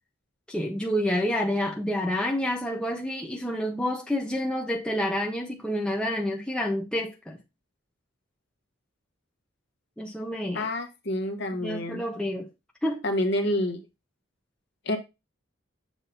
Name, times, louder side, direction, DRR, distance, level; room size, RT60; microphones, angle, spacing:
voice 1, 0.5-7.4 10.0-10.7 11.6-12.5 12.8-13.0, left 1 dB, 5° left, 0.6 m, -28 dB
voice 2, 10.5-12.0 13.0-13.8 14.8-15.0, left 1 dB, 55° left, 1.2 m, -28 dB
7.2 x 2.8 x 5.4 m
head